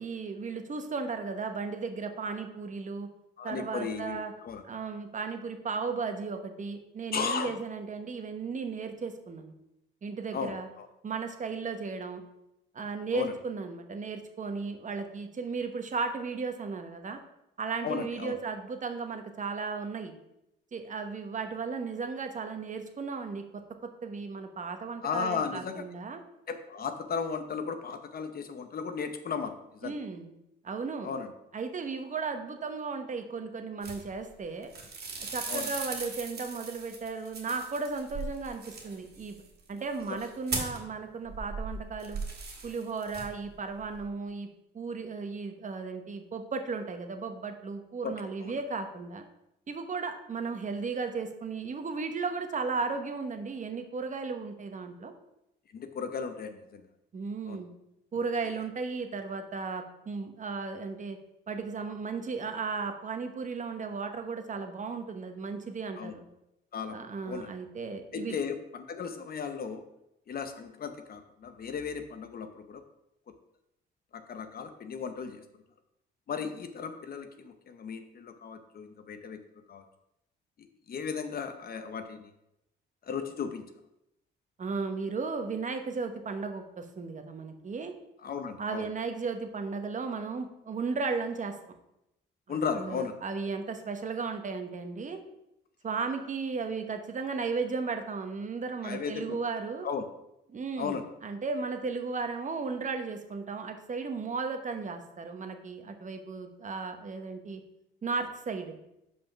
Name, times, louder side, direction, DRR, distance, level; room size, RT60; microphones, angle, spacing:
voice 1, 0.0-3.1 3.4-4.3 4.6-9.5 10.0-10.7 11.0-12.2 12.7-17.2 17.6-20.1 20.7-23.4 23.8-26.2 29.8-30.3 30.6-31.1 31.5-34.7 35.3-39.4 39.7-42.2 42.6-44.5 44.7-49.2 49.7-55.1 57.1-57.7 58.1-61.2 61.5-66.2 66.9-68.4 84.6-87.9 88.6-91.6 92.5-95.2 95.8-99.9 100.5-107.6 108.0-108.8, right 4 dB, 40° right, 6 dB, 1.1 m, -35 dB
voice 2, 3.4-4.6 7.1-7.5 10.3-10.9 13.1-13.3 17.8-18.4 25.0-25.8 26.5-30.0 31.0-31.3 35.5-35.7 40.1-40.2 48.0-48.6 55.7-56.8 57.5-57.6 66.0-66.1 66.7-67.5 68.1-69.8 70.3-72.8 73.3-73.4 74.1-75.4 76.3-79.4 79.7-79.8 80.6-82.3 83.0-83.6 88.2-88.9 92.5-93.2 98.8-99.4 99.8-100.1 100.8-101.0, left 6 dB, 50° left, 8 dB, 0.7 m, -35 dB
sound 1, 33.8-34.4 34.6-40.9 41.2-43.5 43.8-44.1, right 4 dB, 55° right, 2.0 m, -39 dB
5.5 x 5.2 x 6.0 m, 0.86 s
cardioid pair, 90°, 20 cm